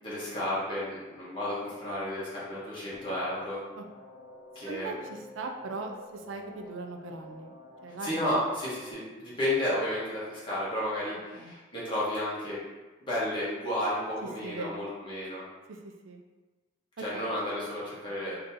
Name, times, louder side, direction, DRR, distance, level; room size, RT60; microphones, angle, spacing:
voice 1, 0.0-3.6 4.5-4.9 8.0-12.6 13.0-15.4 17.0-18.5, left 1 dB, 25° left, -9 dB, 1.5 m, -32 dB
sound 1, 2.9-8.9, left 1 dB, 75° left, 0.7 m, -50 dB
voice 2, 4.7-7.6 7.8-8.3 11.3-11.5 14.4-14.9 15.7-16.2 17.1-17.2, right 3 dB, 85° right, 4 dB, 0.5 m, -39 dB
3.8 x 2.9 x 3.7 m, 1.2 s
head